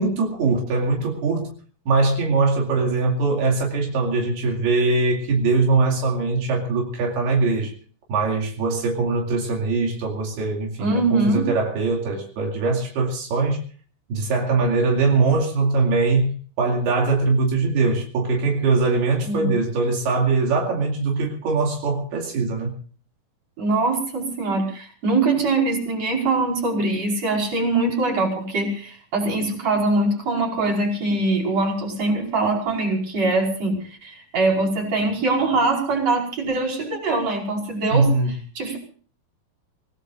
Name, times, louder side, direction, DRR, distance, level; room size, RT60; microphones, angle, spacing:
voice 1, 0.0-1.5 1.9-7.7 8.1-13.6 14.1-16.3 16.6-22.7 37.9-38.3, right 3 dB, 80° right, 0 dB, 4.5 m, -22 dB
voice 2, 10.8-11.4 19.2-19.5 23.6-38.1 38.6-38.8, right 2 dB, 40° right, 0 dB, 6.0 m, -23 dB
27.5 x 17.5 x 2.5 m, 0.42 s
omnidirectional pair, 4.5 m